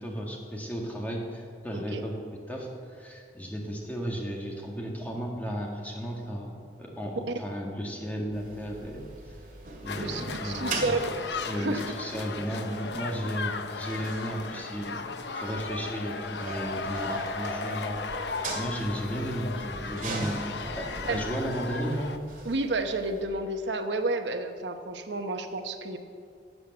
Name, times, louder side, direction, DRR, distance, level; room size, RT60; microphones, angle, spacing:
voice 1, 0.0-2.2 2.5-9.0 9.8-11.0 11.4-15.0 15.3-22.1, equal, 10° left, -1 dB, 1.8 m, -34 dB
sound 1, 8.3-23.2, right 2 dB, 45° right, 2.3 m, -41 dB
sound 2, 9.9-22.2, left 4 dB, 75° left, 0.7 m, -36 dB
voice 2, 10.0-11.3 11.5-11.8 21.0-21.2 22.4-26.0, right 2 dB, 80° right, 7 dB, 0.9 m, -31 dB
12.5 x 8.4 x 7.8 m, 2.3 s
head